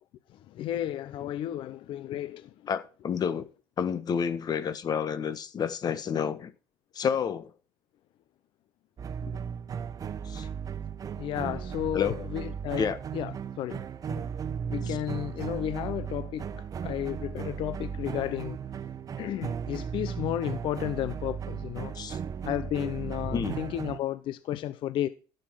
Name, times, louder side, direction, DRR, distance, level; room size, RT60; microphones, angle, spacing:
voice 1, 0.3-2.7 9.2-9.4 11.2-14.3 14.7-18.6 19.2-22.0 22.4-25.1, left 12 dB, 60° left, 0.8 m, -33 dB
voice 2, 2.7-3.5 3.8-6.5 6.9-7.5 10.2-10.5 11.9-12.1 12.8-13.0 14.9-15.0 21.9-22.2 23.3-23.6, left 7 dB, 45° left, 1.3 m, -29 dB
sound 1, 9.0-24.0, right 7 dB, 40° right, 0.8 m, -36 dB
11.5 x 7.9 x 4.7 m
supercardioid pair, 85°, 10 cm